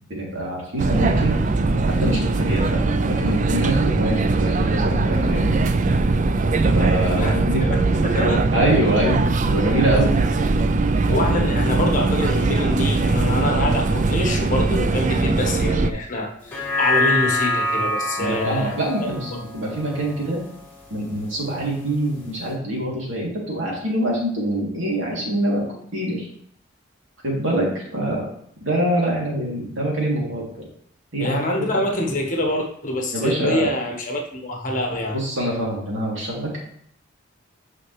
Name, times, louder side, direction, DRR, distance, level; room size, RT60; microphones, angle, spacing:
voice 1, 0.1-1.4 2.0-5.6 6.7-7.6 8.5-9.2 9.5-10.2 18.2-20.4 20.9-25.6 25.9-26.3 27.2-28.3 28.6-30.7 31.1-31.4 31.7-31.8 33.1-33.7 35.1-36.6, right 1 dB, 65° right, -3 dB, 2.9 m, -24 dB
sound 1, 0.8-15.9, right 3 dB, 35° right, 0.4 m, -20 dB
voice 2, 8.0-8.5 11.1-18.7 19.3-19.4 31.2-35.2, left 1 dB, 40° left, 2 dB, 1.3 m, -25 dB
sound 2, 16.4-21.0 21.4-21.5, left 2 dB, 10° left, 2.5 m, -25 dB
9.1 x 5.8 x 3.2 m, 0.67 s
head